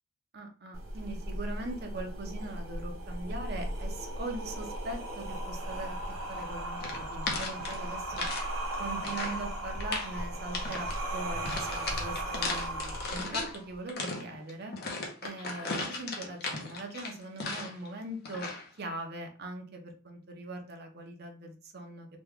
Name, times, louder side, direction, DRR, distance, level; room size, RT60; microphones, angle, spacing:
voice 1, 0.3-18.5 18.8-22.1, right 2 dB, 50° right, 3 dB, 0.7 m, -41 dB
sound 1, 0.7-13.7, right 1 dB, 80° right, 0.9 m, -37 dB
sound 2, 6.8-8.5 8.7-9.4 9.7-10.1 10.5-11.0 11.4-13.6 13.9-17.9 18.2-18.7, left 3 dB, 50° left, 0.8 m, -36 dB
3.0 x 2.3 x 3.5 m, 0.38 s
head